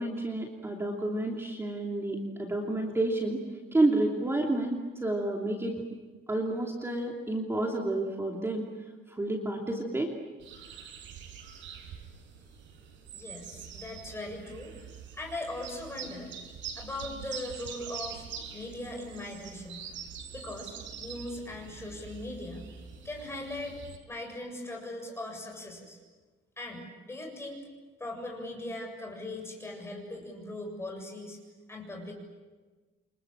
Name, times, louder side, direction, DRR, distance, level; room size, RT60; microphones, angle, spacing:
voice 1, 0.0-3.4 3.7-5.8 6.3-8.6 9.1-10.1, right 2 dB, 10° right, 0 dB, 2.9 m, -30 dB
sound 1, 10.4-24.0, right 7 dB, 75° right, 6.0 m, -44 dB
voice 2, 13.1-14.7 15.2-16.3 16.8-18.2 18.5-19.8 20.3-20.7 21.0-22.7 23.0-26.0 26.6-27.6 28.0-31.4 31.7-32.1, left 1 dB, 15° left, 1 dB, 7.4 m, -39 dB
29.5 x 26.0 x 7.5 m, 1.3 s
cardioid pair, 170°, 20 cm